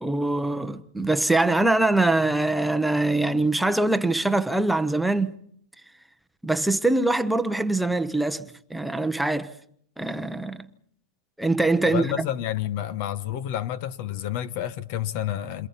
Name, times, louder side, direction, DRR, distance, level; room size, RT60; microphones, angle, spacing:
voice 1, 0.0-5.3 6.4-9.5 10.0-10.7 11.4-12.3, right 2 dB, 5° right, 0.8 m, -23 dB
voice 2, 11.8-15.7, left 11 dB, 55° left, 1.0 m, -29 dB
28.5 x 26.5 x 4.1 m
supercardioid pair, 135°, 0 cm